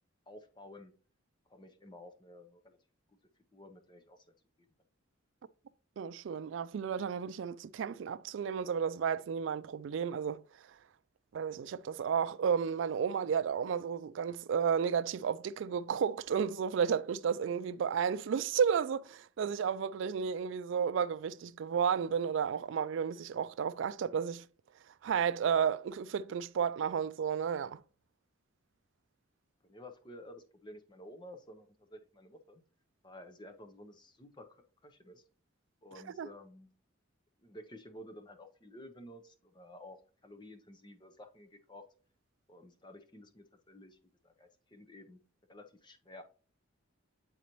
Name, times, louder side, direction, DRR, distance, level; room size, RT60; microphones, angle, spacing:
voice 1, 0.3-0.9 1.5-2.8 3.5-4.3 29.6-32.6 33.0-35.2 35.8-36.7 37.4-41.8 42.5-44.0 44.2-45.2 45.5-46.2, left 1 dB, 20° left, 0.7 m, -52 dB
voice 2, 6.0-10.4 11.3-24.5 25.0-27.8 36.2-36.3, right 7 dB, 65° right, 0.3 m, -32 dB
8.8 x 4.0 x 3.0 m
head